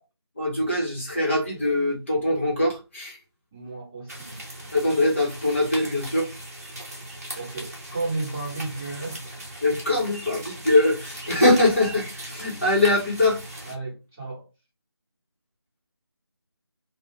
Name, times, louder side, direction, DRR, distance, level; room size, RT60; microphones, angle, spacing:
voice 1, 0.4-3.2 4.7-6.3 9.6-13.4, left 2 dB, 30° left, 1.0 m, -22 dB
voice 2, 3.5-4.5 7.3-9.3 9.7-9.8 13.6-14.5, right 3 dB, 5° right, 0.6 m, -33 dB
sound 1, 4.1-13.7, right 1 dB, 35° right, 1.0 m, -39 dB
2.5 x 2.2 x 3.4 m
figure-of-eight pair, 165°, 14 cm